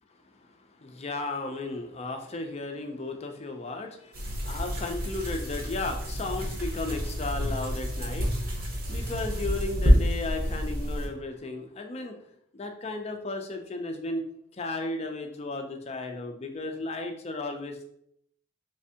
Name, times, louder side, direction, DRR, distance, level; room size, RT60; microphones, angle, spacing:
voice 1, 0.8-12.2 12.5-14.3 14.5-17.8, left 2 dB, 30° left, 4 dB, 0.4 m, -35 dB
sound 1, 4.1-11.1, equal, 45° right, 0.9 m, -28 dB
3.4 x 3.2 x 2.8 m, 0.70 s
head